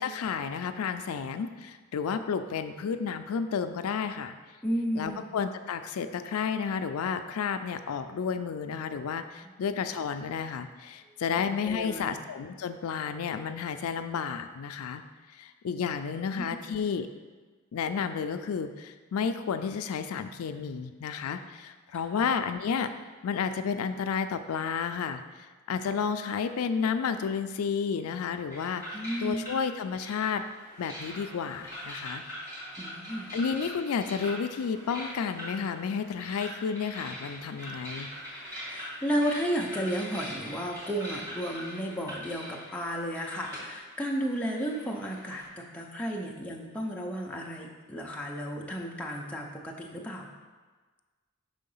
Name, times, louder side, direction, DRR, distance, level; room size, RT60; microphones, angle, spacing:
voice 1, 0.0-4.3 4.9-15.0 15.3-17.1 17.7-22.9 23.2-30.4 30.8-32.6 33.3-38.1, left 6 dB, 85° left, 9 dB, 0.4 m, -31 dB
voice 2, 4.6-5.2 9.4-9.5 11.6-12.1 16.3-16.6 28.9-29.5 32.8-33.3 38.7-50.3, equal, 5° left, -2 dB, 0.6 m, -33 dB
sound 1, 28.5-45.5, equal, 15° right, 1.9 m, -43 dB
5.6 x 3.7 x 5.4 m, 1.4 s
head